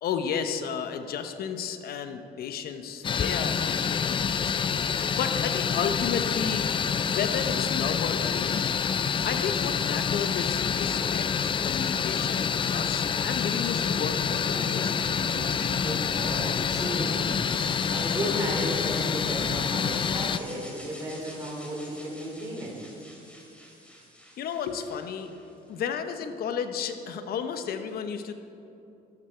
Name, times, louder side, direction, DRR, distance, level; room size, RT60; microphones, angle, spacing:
voice 1, 0.0-6.7 7.0-8.7 9.2-15.2 24.4-25.3 25.7-28.3, left 7 dB, 65° left, 8 dB, 1.0 m, -33 dB
sound 1, 3.0-20.4, left 7 dB, 30° left, 0.4 m, -27 dB
Aircraft, 6.7-19.5, right 3 dB, 55° right, 1.8 m, -48 dB
voice 2, 15.8-22.8, right 1 dB, 20° right, -3 dB, 3.1 m, -34 dB
sound 2, 17.5-25.5, equal, 5° left, 2.8 m, -45 dB
13.0 x 11.5 x 4.6 m, 2.8 s
cardioid pair, 110°, 17 cm